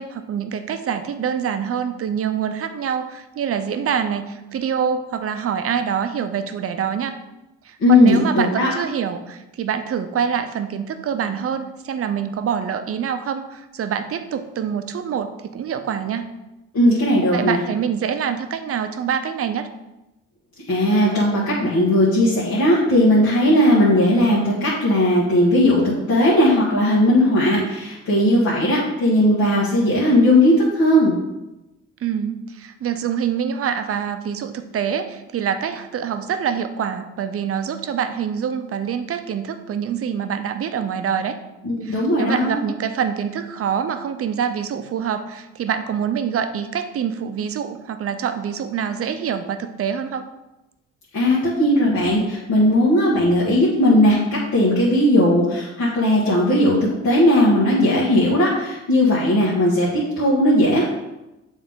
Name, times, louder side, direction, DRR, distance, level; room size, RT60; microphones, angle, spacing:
voice 1, 0.0-7.1 7.6-16.3 17.3-19.7 32.0-41.3 41.8-50.3, right 7 dB, 50° right, 9 dB, 0.6 m, -25 dB
voice 2, 7.8-8.7 16.7-17.6 20.7-31.2 41.6-42.6 51.1-56.8 57.0-60.8, left 1 dB, 60° left, -8 dB, 1.7 m, -17 dB
7.1 x 3.8 x 3.6 m, 0.98 s
cardioid pair, 90°, 30 cm